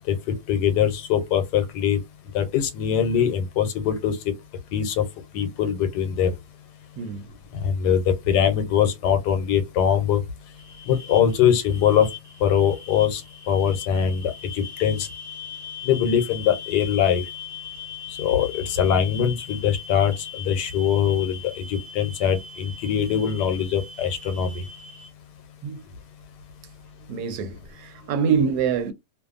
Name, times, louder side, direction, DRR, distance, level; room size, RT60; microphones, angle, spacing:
voice 1, 0.5-2.0 2.3-4.2 4.7-5.0 5.3-6.3 7.6-10.2 10.9-12.1 12.4-13.2 13.5-15.1 15.8-17.2 18.2-20.1 20.4-24.6, left 8 dB, 85° left, 1.2 m, -22 dB
voice 2, 7.0-7.3 25.6-25.8 27.1-28.9, right 6 dB, 75° right, 1.1 m, -25 dB
sound 1, 10.6-25.1, left 7 dB, 15° right, 0.6 m, -40 dB
2.6 x 2.4 x 2.4 m
omnidirectional pair, 1.8 m